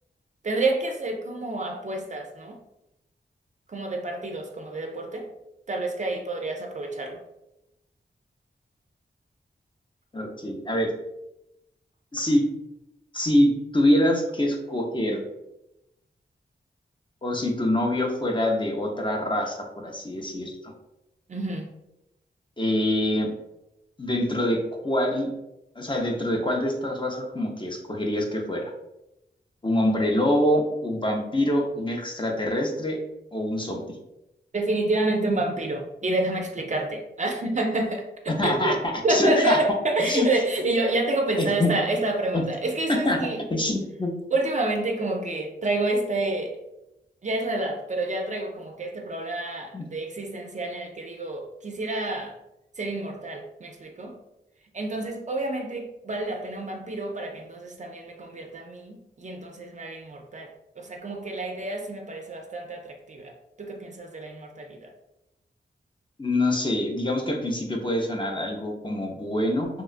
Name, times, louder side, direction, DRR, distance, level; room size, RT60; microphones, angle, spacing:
voice 1, 0.4-2.6 3.7-5.3 5.7-7.2 21.3-21.7 34.5-38.8 39.0-43.4 44.3-46.6 47.2-52.3 52.8-54.1 54.7-60.5 60.8-63.3 63.6-64.9, right 2 dB, 40° right, 3 dB, 0.4 m, -28 dB
voice 2, 10.1-10.9 12.1-12.4 13.1-15.2 17.2-20.7 22.6-23.3 24.0-25.3 25.8-28.6 29.6-33.0 33.3-34.0 38.3-39.6 40.0-40.3 41.4-41.7 42.3-42.4 42.9-43.2 43.5-44.2 49.7-49.9 66.2-69.7, left 1 dB, 25° left, 1 dB, 0.5 m, -25 dB
2.9 x 2.2 x 2.4 m, 0.90 s
cardioid pair, 60°, 19 cm